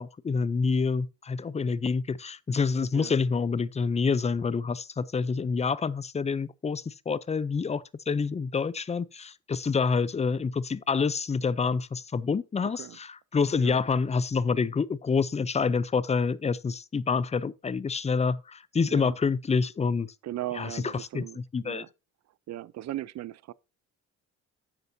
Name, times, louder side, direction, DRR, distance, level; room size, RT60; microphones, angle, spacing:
voice 1, 0.0-20.1 20.6-21.8, left 5 dB, 20° left, 0.5 m, -27 dB
voice 2, 12.6-13.0 13.6-13.8 18.9-19.2 20.2-21.9 22.5-23.5, right 14 dB, 60° right, 0.6 m, -38 dB
11.0 x 7.9 x 2.7 m
cardioid pair, 90°, 30 cm